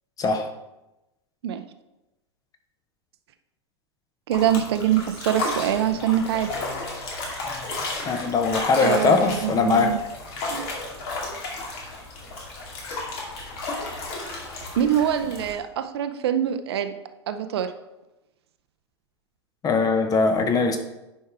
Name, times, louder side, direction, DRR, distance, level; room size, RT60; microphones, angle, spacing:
sound 1, 4.3-15.5, left 2 dB, 55° left, 2.3 m, -33 dB
voice 1, 4.3-6.5 8.8-10.0 10.5-10.7 14.8-16.9 17.3-17.7, right 10 dB, 60° right, 9 dB, 0.7 m, -24 dB
voice 2, 8.0-10.0 19.6-20.8, left 4 dB, 25° left, 7 dB, 1.0 m, -21 dB
9.7 x 5.5 x 3.4 m, 0.98 s
figure-of-eight pair, 90°, 15 cm